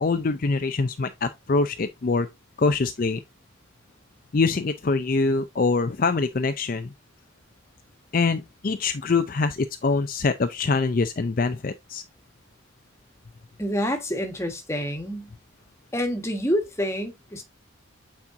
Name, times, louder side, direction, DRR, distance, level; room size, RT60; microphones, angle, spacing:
voice 1, 0.0-2.3 2.6-3.2 4.3-6.9 8.1-12.0, left 4 dB, 45° left, 0.5 m, -24 dB
voice 2, 13.6-15.3 15.9-17.4, equal, 15° left, 1.4 m, -27 dB
8.3 x 4.3 x 2.6 m
head